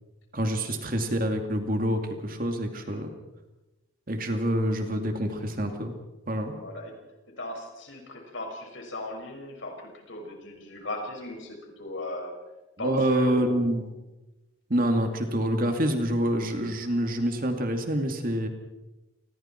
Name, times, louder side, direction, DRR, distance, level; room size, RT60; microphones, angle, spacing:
voice 1, 0.3-3.1 4.1-5.9 6.3-6.6 12.8-13.9 14.7-18.5, right 1 dB, 40° right, 4 dB, 2.5 m, -26 dB
voice 2, 6.5-6.9 7.4-12.3 12.8-13.8, left 1 dB, 65° left, 2 dB, 6.2 m, -38 dB
28.5 x 21.5 x 4.6 m, 1.0 s
head